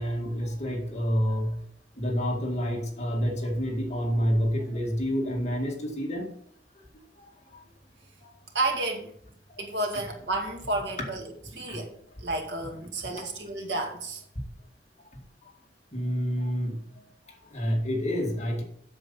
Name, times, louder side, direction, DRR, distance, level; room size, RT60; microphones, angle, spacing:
voice 1, 0.0-1.6 2.0-6.3 7.5-7.6 8.2-8.3 9.9-10.0 11.6-11.8 13.1-13.3 15.9-16.8 17.5-18.6, equal, 40° left, 0 dB, 2.0 m, -28 dB
voice 2, 8.5-9.1 9.6-11.9 12.2-14.2, right 2 dB, 75° right, 2 dB, 2.0 m, -31 dB
8.0 x 7.2 x 5.5 m, 0.66 s
head